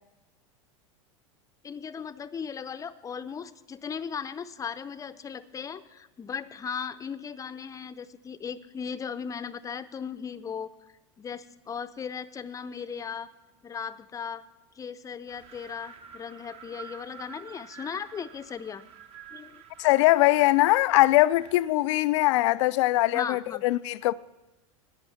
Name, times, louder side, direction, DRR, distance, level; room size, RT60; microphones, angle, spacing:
voice 1, 1.6-10.7 11.2-13.3 13.6-14.4 14.8-18.8 19.3-19.6 23.1-23.6, left 6 dB, 20° left, 0.6 m, -37 dB
Wind, 15.3-21.7, right 7 dB, 35° right, 1.0 m, -49 dB
voice 2, 19.8-24.1, left 18 dB, 65° left, 0.4 m, -22 dB
11.0 x 8.7 x 7.2 m
hypercardioid pair, 100°, 17 cm